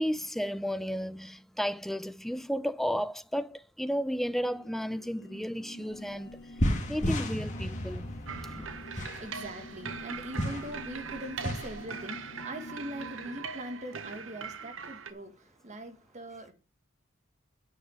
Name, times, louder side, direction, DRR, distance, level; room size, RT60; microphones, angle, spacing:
voice 1, 0.0-6.3 6.9-8.1 8.5-8.6, equal, ahead, 0.4 m, -33 dB
sound 1, 4.3-13.4, left 1 dB, 65° left, 1.8 m, -48 dB
sound 2, 5.9-6.0 6.3-11.8, equal, 40° left, 1.9 m, -33 dB
sound 3, 8.3-15.1, right 6 dB, 85° right, 1.0 m, -41 dB
voice 2, 8.7-16.5, right 1 dB, 35° right, 1.8 m, -42 dB
9.0 x 5.1 x 7.8 m
head